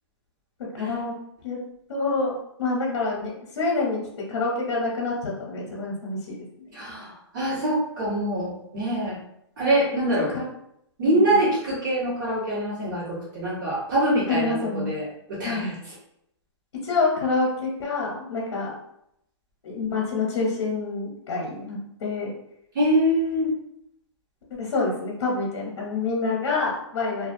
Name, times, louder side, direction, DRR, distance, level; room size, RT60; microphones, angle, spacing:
voice 1, 0.7-1.1 1.4-1.6 1.9-2.3 2.6-4.0 4.3-6.4 10.3-10.5 11.0-11.4 14.3-14.9 15.4-15.7 16.8-18.7 19.6-22.3 24.5-27.3, left 3 dB, 65° left, -2 dB, 0.7 m, -27 dB
voice 2, 6.7-9.2 9.6-10.3 11.0-15.7 22.7-23.5, right 1 dB, 45° right, -7 dB, 1.1 m, -24 dB
2.4 x 2.2 x 2.5 m, 0.76 s
hypercardioid pair, 165°, 15 cm